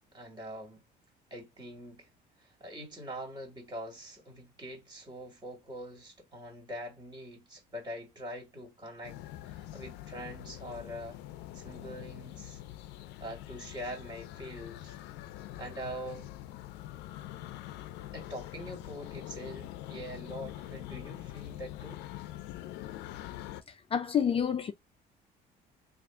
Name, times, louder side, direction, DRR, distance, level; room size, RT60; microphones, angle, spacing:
voice 1, 0.1-0.8 1.3-2.1 2.4-9.2 9.5-11.2 11.5-12.6 13.2-15.0 15.6-16.3 18.1-22.1, equal, 25° right, 2.4 m, -43 dB
sound 1, 9.0-23.6, left 14 dB, 90° left, 0.5 m, -44 dB
voice 2, 23.9-24.7, left 8 dB, 35° left, 0.4 m, -28 dB
3.4 x 2.5 x 3.6 m
cardioid pair, 110°, 17 cm